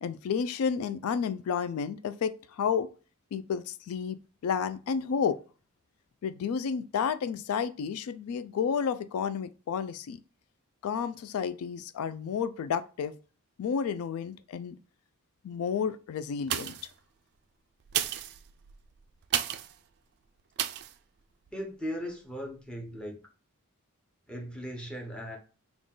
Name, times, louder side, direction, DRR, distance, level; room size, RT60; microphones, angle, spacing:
voice 1, 0.0-2.9 3.3-4.2 4.4-5.4 6.2-10.2 10.8-13.1 13.6-14.8 15.4-16.7, left 6 dB, 85° left, 0.3 m, -31 dB
sound 1, 16.4-17.0 17.8-19.8 20.6-20.9 21.5-21.6, right 11 dB, 50° right, 0.3 m, -33 dB
voice 2, 21.5-23.2 24.3-25.4, equal, 5° left, 0.8 m, -38 dB
3.8 x 2.4 x 3.6 m
head